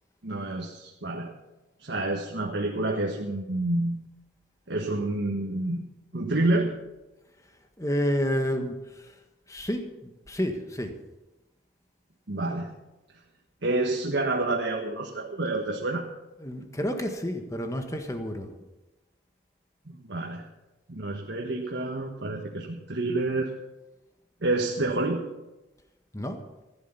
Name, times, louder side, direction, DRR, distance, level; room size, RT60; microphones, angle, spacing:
voice 1, 0.2-1.3 1.8-4.0 4.7-5.8 6.1-6.7 12.3-12.7 13.6-16.0 19.9-20.5 20.9-23.5 24.4-25.3, right 2 dB, 75° right, 0 dB, 1.6 m, -28 dB
voice 2, 7.8-9.1 9.5-11.0 16.4-18.5 26.1-26.4, equal, 15° left, 5 dB, 1.4 m, -30 dB
15.5 x 11.5 x 5.8 m, 1.0 s
head